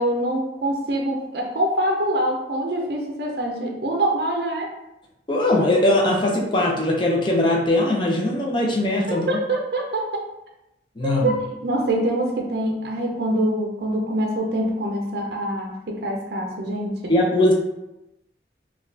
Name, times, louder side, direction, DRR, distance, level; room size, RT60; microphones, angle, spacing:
voice 1, 0.0-4.7 9.1-10.2 11.0-17.1, right 1 dB, 60° right, 0 dB, 0.5 m, -25 dB
voice 2, 5.3-9.3 11.0-11.4 17.1-17.5, left 1 dB, 25° left, -2 dB, 0.5 m, -20 dB
3.9 x 2.3 x 2.7 m, 0.90 s
head